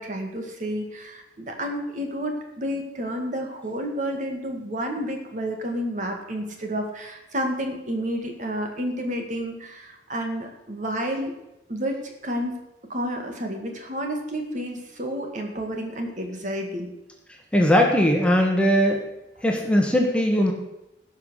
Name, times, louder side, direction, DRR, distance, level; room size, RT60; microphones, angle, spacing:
voice 1, 0.0-11.3 11.7-12.5 12.9-16.9, equal, 45° right, 3 dB, 2.0 m, -30 dB
voice 2, 17.5-19.0 19.4-20.5, equal, 5° left, 1 dB, 1.4 m, -19 dB
17.0 x 5.8 x 6.4 m, 0.92 s
head